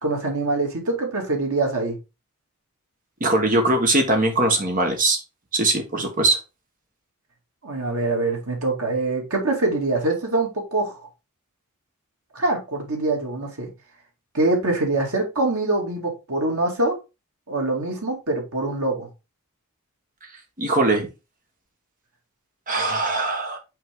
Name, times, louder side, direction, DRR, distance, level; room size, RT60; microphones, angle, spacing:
voice 1, 0.0-1.9 7.6-10.9 12.3-13.7 14.3-17.0 17.5-19.1, right 2 dB, 85° right, 0 dB, 2.5 m, -24 dB
voice 2, 3.2-5.2 5.5-6.4 20.6-21.1 22.7-23.6, right 2 dB, 40° right, 4 dB, 1.6 m, -21 dB
5.8 x 4.5 x 3.8 m, 0.27 s
head